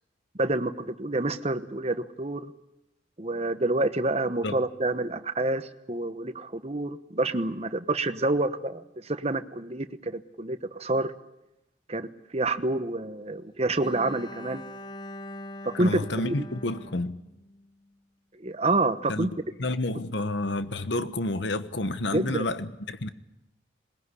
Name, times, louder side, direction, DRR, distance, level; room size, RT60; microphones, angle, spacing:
voice 1, 0.4-2.5 3.2-11.1 11.9-14.6 15.6-16.3 18.4-19.3 22.1-22.5, right 2 dB, 35° right, 1.1 m, -28 dB
Bowed string instrument, 13.8-17.9, left 1 dB, 25° left, 0.9 m, -43 dB
voice 2, 15.7-17.2 19.1-23.1, left 2 dB, 70° left, 1.2 m, -30 dB
21.5 x 20.5 x 9.8 m
head